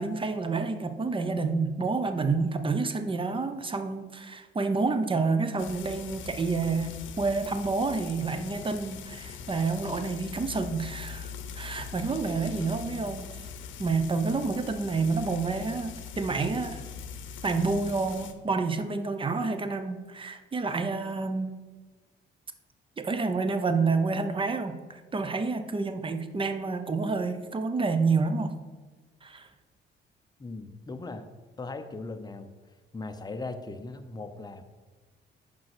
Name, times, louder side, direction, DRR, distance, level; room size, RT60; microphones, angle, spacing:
voice 1, 0.0-13.3 13.8-16.8 17.4-21.6 23.0-28.5 29.2-29.5, right 4 dB, 25° right, 9 dB, 0.7 m, -29 dB
Frying (food), 5.6-18.3, left 7 dB, 75° left, 0.7 m, -42 dB
voice 2, 30.4-31.3 31.6-32.5 32.9-34.6, left 3 dB, 20° left, 7 dB, 0.7 m, -38 dB
5.6 x 5.2 x 6.0 m, 1.3 s
cardioid pair, 90°, 20 cm